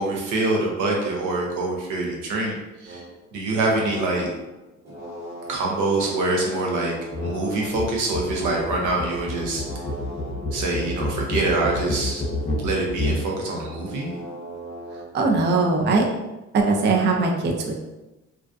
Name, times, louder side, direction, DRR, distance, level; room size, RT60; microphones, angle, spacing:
voice 1, 0.0-2.5 2.8-3.0 3.3-4.3 5.5-6.9 7.2-9.6 10.5-12.2 12.6-14.1, right 2 dB, 85° right, -1 dB, 0.7 m, -25 dB
sound 1, 2.8-7.7 8.1-15.7, right 1 dB, 60° right, 1.2 m, -39 dB
sound 2, 7.1-7.4 7.6-13.3, left 2 dB, 40° left, 0.5 m, -29 dB
voice 2, 14.9-16.1 16.5-17.7, right 3 dB, 35° right, 1 dB, 0.4 m, -21 dB
2.4 x 2.2 x 2.4 m, 1.0 s
cardioid pair, 90°, 30 cm